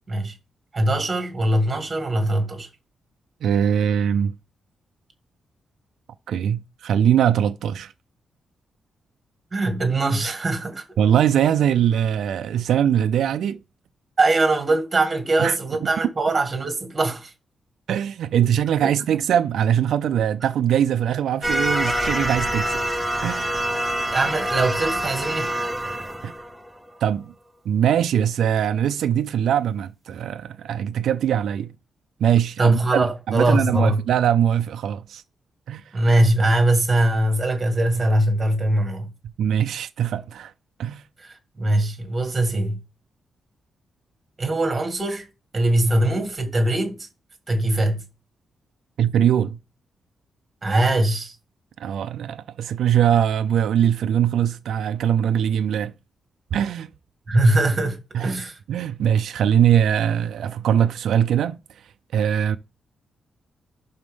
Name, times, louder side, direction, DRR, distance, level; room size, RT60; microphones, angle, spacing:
voice 1, 0.7-2.7 9.5-10.8 14.2-17.3 18.8-18.9 24.1-25.5 32.6-34.0 35.9-39.1 41.2-42.8 44.4-45.3 45.5-47.1 47.5-48.0 50.6-51.3 57.3-58.6, right 1 dB, 20° right, 1.9 m, -21 dB
voice 2, 3.4-4.3 6.3-7.9 11.0-13.6 15.4-15.6 17.9-22.8 23.2-23.5 26.2-26.3 27.0-27.3 27.7-31.7 32.2-35.2 35.7-35.8 39.4-40.5 40.8-41.0 49.0-49.6 51.8-55.9 56.5-56.9 58.1-58.3 58.7-61.6 62.1-62.6, right 9 dB, 80° right, 0.4 m, -21 dB
sound 1, 21.4-26.9, right 1 dB, ahead, 0.6 m, -25 dB
11.5 x 4.4 x 3.7 m
wide cardioid pair, 170°, 0 cm